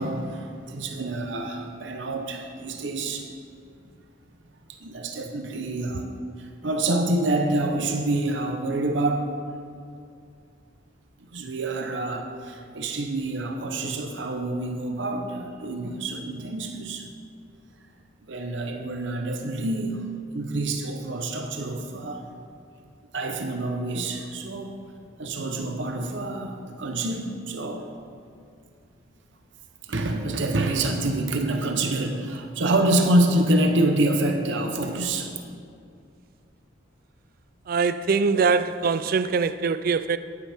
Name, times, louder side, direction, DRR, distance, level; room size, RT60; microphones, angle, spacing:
voice 1, 0.0-3.3 4.8-6.1 6.4-9.4 11.3-17.1 18.3-20.0 20.3-22.3 23.1-24.7 25.2-27.9 29.9-35.4, right 2 dB, 65° right, 0.8 m, -27 dB
voice 2, 37.7-40.2, right 5 dB, 45° right, 0.3 m, -23 dB
10.0 x 9.9 x 3.5 m
head